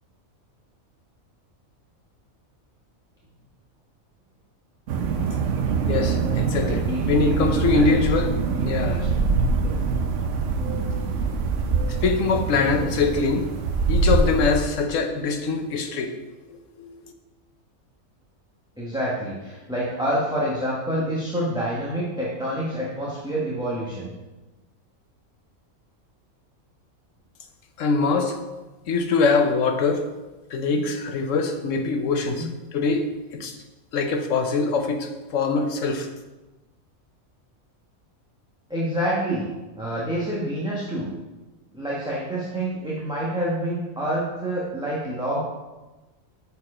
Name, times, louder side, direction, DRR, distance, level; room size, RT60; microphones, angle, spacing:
sound 1, 4.9-14.7, right 4 dB, 65° right, 0.9 m, -24 dB
voice 1, 5.9-8.3 8.6-9.1 11.9-16.2 16.5-17.1 27.8-28.4 28.9-30.1 30.5-33.6 33.9-36.1, left 4 dB, 70° left, 5 dB, 1.1 m, -23 dB
voice 2, 6.5-8.0 8.5-9.1 9.6-9.7 10.5-10.9 12.5-12.9 18.8-24.1 30.7-30.8 32.3-32.5 38.7-39.5 39.8-41.1 41.7-45.4, right 1 dB, 5° right, -7 dB, 1.1 m, -28 dB
6.8 x 4.6 x 4.9 m, 1.1 s
omnidirectional pair, 1.4 m